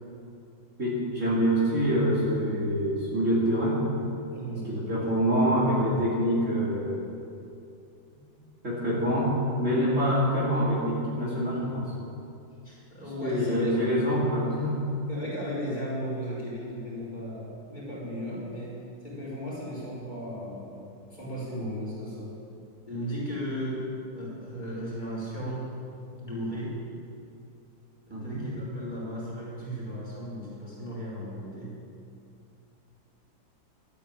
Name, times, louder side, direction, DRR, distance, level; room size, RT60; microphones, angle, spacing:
voice 1, 0.8-3.8 4.7-7.0 8.6-11.9 13.2-14.8 28.1-28.4, equal, 40° right, -7 dB, 3.2 m, -25 dB
voice 2, 4.3-5.2 8.1-8.5 12.6-13.7 15.1-22.3 22.9-25.7 26.2-26.7 28.1-31.8, equal, 20° left, -7 dB, 4.6 m, -36 dB
13.0 x 9.1 x 8.9 m, 2.6 s
omnidirectional pair, 2.1 m